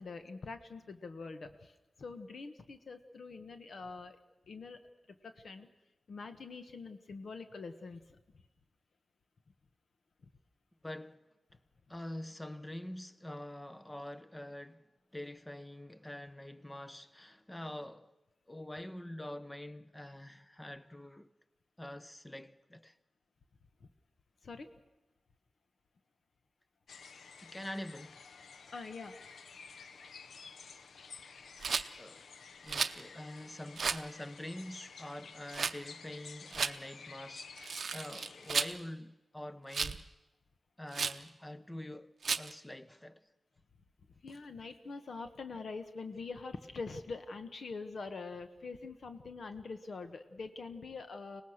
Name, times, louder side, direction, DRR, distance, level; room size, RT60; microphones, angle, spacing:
voice 1, 0.0-4.2 4.5-4.8 5.1-5.7 6.1-8.1 24.4-24.7 28.7-29.2 44.2-51.4, left 4 dB, 65° left, 1.3 m, -44 dB
voice 2, 10.8-11.3 11.9-14.9 15.1-18.1 18.5-21.3 21.8-23.0 27.4-28.2 30.6-30.7 31.9-32.2 32.6-40.1 40.8-43.2, left 1 dB, 15° left, 0.8 m, -45 dB
sound 1, 26.9-38.8, left 5 dB, 85° left, 0.7 m, -52 dB
Rattle, 31.6-31.9 32.7-33.0 33.8-34.0 35.5-35.8 36.5-36.7 37.6-38.8 39.7-40.0 40.9-41.2 42.2-42.5, right 5 dB, 70° right, 0.6 m, -34 dB
24.5 x 19.0 x 6.5 m
wide cardioid pair, 95°, 0 cm